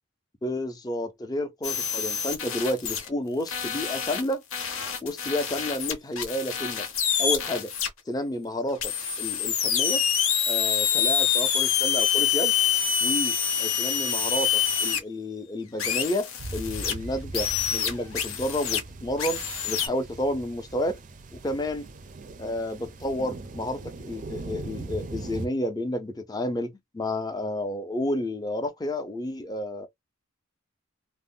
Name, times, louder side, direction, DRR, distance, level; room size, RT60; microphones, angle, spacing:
voice 1, 0.4-4.4 5.0-6.9 7.2-7.7 8.1-10.0 10.5-12.5 13.0-21.0 21.3-21.9 22.4-29.9, left 1 dB, 20° left, 0.5 m, -31 dB
sound 1, 1.6-3.1 3.5-7.9 8.8-15.0 15.8-16.9 17.3-18.8 19.2-19.9, left 8 dB, 85° left, 0.9 m, -26 dB
sound 2, 16.4-25.5, right 2 dB, 40° right, 0.4 m, -40 dB
2.4 x 2.0 x 3.5 m
head